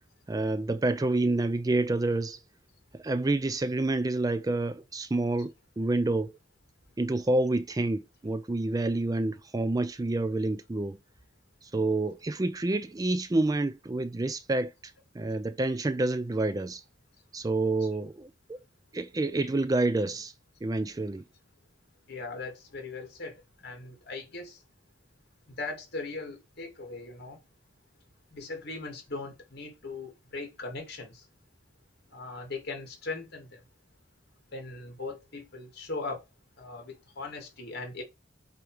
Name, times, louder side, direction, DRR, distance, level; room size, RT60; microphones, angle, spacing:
voice 1, 0.3-2.4 2.9-6.3 7.0-11.0 11.6-16.8 17.3-18.6 18.9-20.3 20.6-21.2, right 2 dB, 20° right, 0.4 m, -28 dB
voice 2, 22.1-23.4 23.6-24.6 25.5-27.4 28.3-31.2 32.1-33.6 34.5-36.2 36.6-38.0, left 3 dB, 55° left, 2.4 m, -39 dB
7.8 x 3.1 x 4.9 m
head